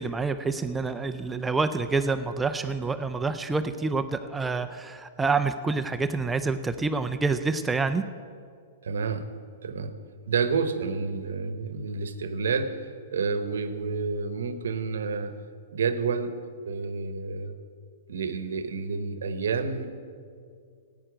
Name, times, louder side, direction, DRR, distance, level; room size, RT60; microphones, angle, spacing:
voice 1, 0.0-8.0, right 4 dB, 10° right, 9 dB, 0.4 m, -27 dB
voice 2, 8.8-9.3 9.6-10.0 10.3-15.3 15.7-16.3 16.7-17.6 18.1-20.0, right 5 dB, 80° right, 11 dB, 0.9 m, -29 dB
14.0 x 9.1 x 5.0 m, 2.3 s
hypercardioid pair, 135°, 0 cm